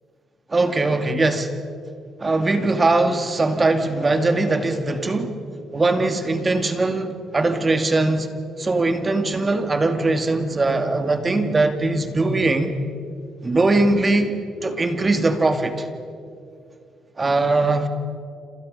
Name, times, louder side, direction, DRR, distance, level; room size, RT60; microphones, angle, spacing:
voice 1, 0.5-1.5 2.2-5.3 5.7-8.3 8.6-12.7 13.4-15.9 17.2-17.9, right 2 dB, 25° right, 7 dB, 2.3 m, -21 dB
29.5 x 27.0 x 5.5 m, 2.4 s
cardioid pair, 90°, 0 cm